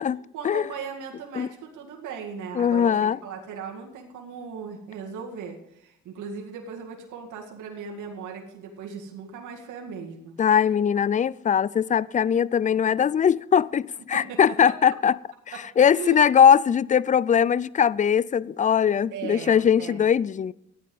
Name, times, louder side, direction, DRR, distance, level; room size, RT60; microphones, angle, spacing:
voice 1, 0.3-10.3 14.1-14.8 15.5-15.6 15.9-16.2 19.1-20.1, right 6 dB, 80° right, 2.0 m, -38 dB
voice 2, 2.6-3.2 10.4-15.2 15.8-20.5, left 8 dB, 25° left, 0.3 m, -20 dB
14.5 x 9.5 x 5.3 m
cardioid pair, 90°, 30 cm